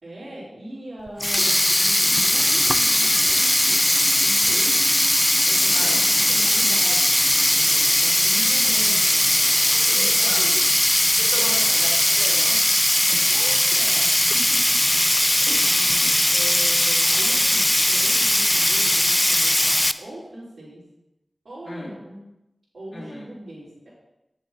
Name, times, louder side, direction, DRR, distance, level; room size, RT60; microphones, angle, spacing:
voice 1, 0.0-5.0 5.4-10.6 11.3-11.6 13.3-14.8 15.6-16.0 16.3-20.8 21.4-22.2 22.7-23.9, right 1 dB, 75° right, -12 dB, 3.9 m, -40 dB
Sink (filling or washing), 1.1-19.9, left 1 dB, 15° left, 0.4 m, -19 dB
voice 2, 9.7-10.4 11.2-12.7 13.1-13.2 15.5-16.1 21.7-21.9 22.9-23.2, left 1 dB, 70° left, -5 dB, 3.0 m, -37 dB
9.4 x 7.3 x 4.1 m, 0.89 s
wide cardioid pair, 55°, 0 cm